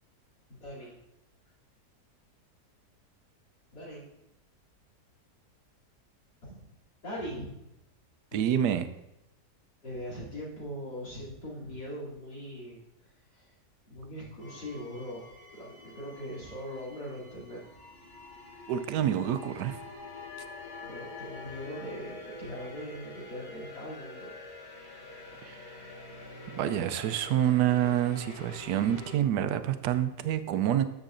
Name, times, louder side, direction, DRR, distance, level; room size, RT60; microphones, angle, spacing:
voice 1, 0.5-1.0 3.7-4.1 6.4-6.7 7.0-7.5 8.3-8.4 9.8-12.8 13.0-13.5 13.9-15.2 15.5-17.7 20.8-24.4, equal, 85° left, -6 dB, 3.5 m, -41 dB
voice 2, 8.3-8.9 18.7-19.8 25.4-25.9 26.5-30.8, right 11 dB, 80° right, 11 dB, 1.2 m, -27 dB
sound 1, 14.4-29.2, left 2 dB, 35° left, 1.1 m, -46 dB
13.5 x 6.6 x 2.6 m, 0.88 s
omnidirectional pair, 1.8 m